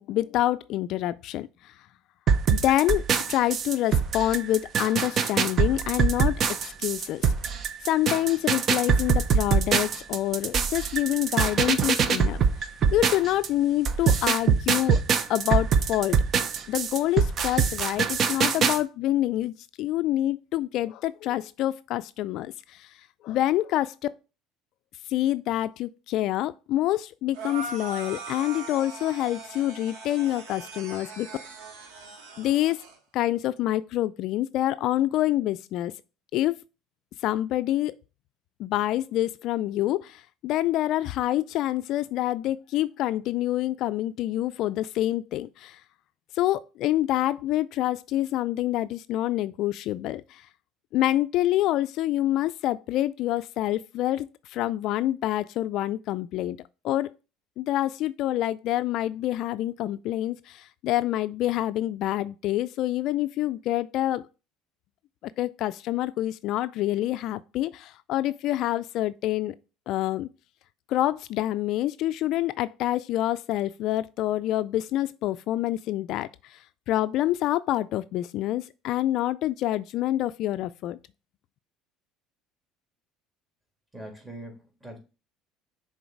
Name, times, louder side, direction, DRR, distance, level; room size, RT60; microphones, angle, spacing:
voice 1, 0.0-1.7 2.5-7.3 7.8-12.4 12.9-15.0 15.3-16.2 16.7-22.9 23.2-23.9 25.1-31.3 32.4-32.8 33.1-35.9 36.3-36.6 37.2-37.9 38.6-45.8 46.3-50.5 50.9-56.6 56.8-57.1 57.6-64.2 65.2-69.5 69.9-70.3 70.9-76.6 76.9-81.0, left 14 dB, 65° left, 0.3 m, -27 dB
sound 1, 2.3-13.5 13.8-18.8, right 6 dB, 45° right, 0.7 m, -23 dB
sound 2, 27.3-33.0, right 4 dB, 80° right, 1.8 m, -40 dB
voice 2, 83.9-85.0, right 1 dB, 10° right, 2.9 m, -42 dB
6.3 x 3.8 x 4.5 m
supercardioid pair, 100°, 0 cm